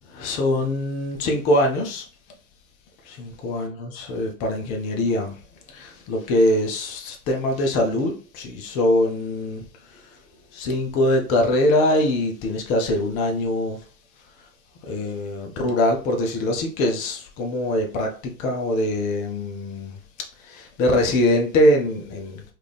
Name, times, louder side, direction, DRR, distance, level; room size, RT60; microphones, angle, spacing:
voice 1, 0.1-2.1 3.0-5.4 5.7-10.1 10.5-13.8 14.8-20.0 20.4-22.4, left 1 dB, 20° left, 0.3 m, -23 dB
3.5 x 2.4 x 3.3 m
figure-of-eight pair, 95°, 44 cm